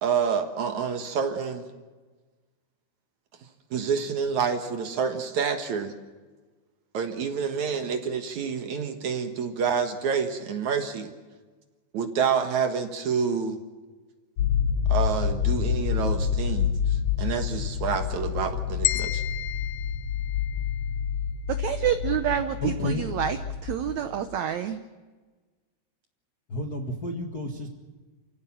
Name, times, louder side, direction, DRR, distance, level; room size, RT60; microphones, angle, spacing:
voice 1, 0.0-1.7 3.7-5.9 6.9-11.1 11.9-13.6 14.9-19.2, right 6 dB, 60° right, 6 dB, 2.5 m, -28 dB
sound 1, 14.4-24.2, left 8 dB, 60° left, 2.8 m, -28 dB
sound 2, 18.8-21.0, left 15 dB, 85° left, 1.6 m, -32 dB
voice 2, 21.6-23.4 23.6-24.8, right 10 dB, 80° right, 9 dB, 1.6 m, -27 dB
voice 3, 22.6-23.2 26.5-27.8, left 2 dB, 40° left, 0 dB, 1.3 m, -31 dB
28.5 x 16.5 x 7.3 m, 1.3 s
omnidirectional pair, 4.3 m